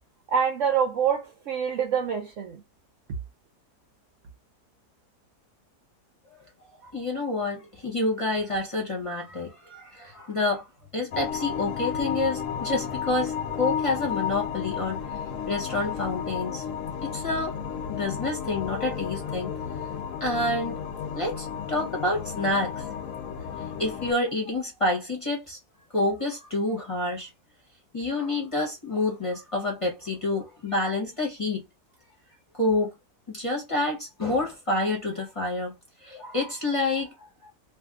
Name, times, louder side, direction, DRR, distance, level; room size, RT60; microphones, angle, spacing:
voice 1, 0.3-2.6, right 7 dB, 60° right, 0.9 m, -26 dB
voice 2, 6.8-10.7 10.9-15.0 15.5-16.6 17.0-17.5 17.9-19.5 20.2-20.8 21.1-23.0 23.8-25.6 25.9-27.3 27.9-31.6 32.5-32.9 33.3-35.7 36.0-37.3, left 2 dB, 25° left, 0.9 m, -28 dB
sound 1, 11.1-24.1, left 7 dB, 60° left, 1.0 m, -32 dB
2.7 x 2.6 x 3.5 m
omnidirectional pair, 1.7 m